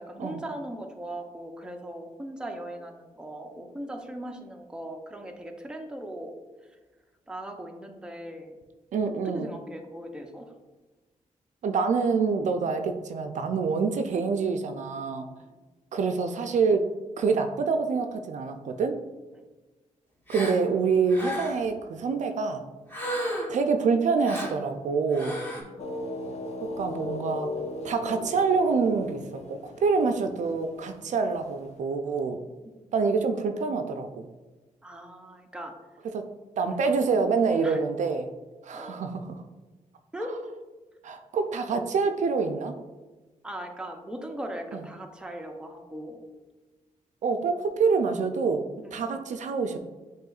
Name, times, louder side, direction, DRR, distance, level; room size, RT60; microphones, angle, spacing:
voice 1, 0.0-6.3 7.3-8.6 9.1-10.5 15.4-15.5 25.6-25.8 32.6-32.8 34.8-35.7 36.6-36.8 37.6-37.8 38.7-39.0 40.1-40.3 43.4-46.2 48.8-49.2, right 1 dB, 5° right, 3 dB, 0.6 m, -39 dB
voice 2, 8.9-9.5 11.6-15.3 15.9-16.9 17.2-19.0 20.3-22.6 23.5-25.4 26.6-27.5 27.8-32.4 32.9-34.3 36.1-36.3 36.6-38.3 38.6-39.4 41.0-42.7 44.7-44.8 47.2-49.8, right 5 dB, 65° right, 6 dB, 0.4 m, -26 dB
Gasp, 20.3-20.6 21.1-21.7 22.9-23.6 24.2-24.6 25.1-25.6, equal, 15° left, 1.2 m, -33 dB
sound 1, 25.8-31.6, left 2 dB, 55° left, 0.6 m, -37 dB
7.5 x 3.0 x 2.4 m, 1.2 s
cardioid pair, 100°, 14 cm